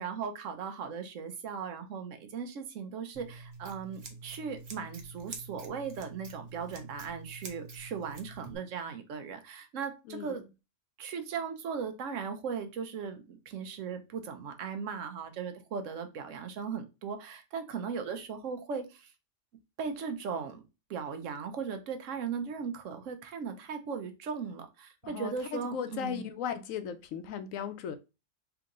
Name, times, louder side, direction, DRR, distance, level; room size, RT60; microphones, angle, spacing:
voice 1, 0.0-10.4 11.0-19.1 19.8-20.6 20.9-26.2, right 6 dB, 65° right, 1.0 m, -38 dB
Scissors, 3.1-8.5, right 4 dB, 45° right, 0.8 m, -47 dB
voice 2, 10.1-10.4 25.0-28.0, left 8 dB, 75° left, 0.9 m, -37 dB
3.5 x 2.9 x 3.7 m
omnidirectional pair, 1.5 m